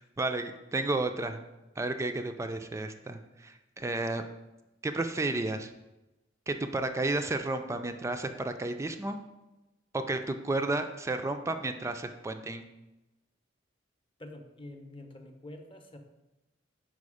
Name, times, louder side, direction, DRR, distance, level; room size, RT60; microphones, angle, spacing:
voice 1, 0.0-1.4 1.8-4.2 4.8-5.7 6.5-9.2 9.9-12.6, right 2 dB, 15° right, 7 dB, 0.3 m, -32 dB
voice 2, 14.2-16.0, left 1 dB, 30° left, 5 dB, 0.6 m, -46 dB
5.3 x 4.5 x 4.8 m, 1.0 s
head